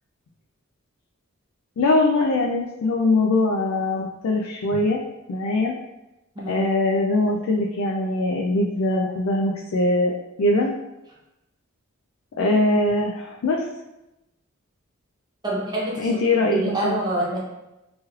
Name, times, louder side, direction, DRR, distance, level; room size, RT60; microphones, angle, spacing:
voice 1, 1.8-5.0 5.3-5.7 6.5-10.1 10.4-10.7 12.4-13.6 16.0-17.0, left 2 dB, 75° left, -1 dB, 0.4 m, -22 dB
voice 2, 6.4-6.7 15.4-16.1 16.5-17.4, right 1 dB, 20° right, -4 dB, 0.7 m, -26 dB
3.0 x 3.0 x 2.3 m, 0.94 s
head